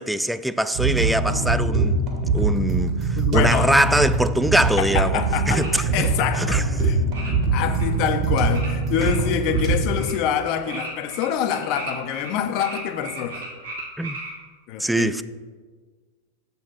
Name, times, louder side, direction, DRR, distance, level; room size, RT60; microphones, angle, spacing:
voice 1, 0.0-2.0 2.3-5.2 5.5-6.0 6.4-6.6 14.0-14.2 14.8-15.2, right 1 dB, ahead, 0.3 m, -22 dB
sound 1, 0.7-10.0, right 3 dB, 40° right, 2.2 m, -23 dB
voice 2, 2.5-2.9 3.2-3.8 4.8-7.0 7.2-13.4 14.7-15.2, left 8 dB, 40° left, 0.8 m, -26 dB
sound 2, 5.1-5.2 5.5-5.7 7.1-7.3 7.6-7.9 8.5-8.7 8.9-9.6 9.9-10.1 10.5-12.3 12.6-14.3, right 3 dB, 75° right, 3.1 m, -36 dB
7.6 x 7.0 x 5.7 m
figure-of-eight pair, 90°, 0 cm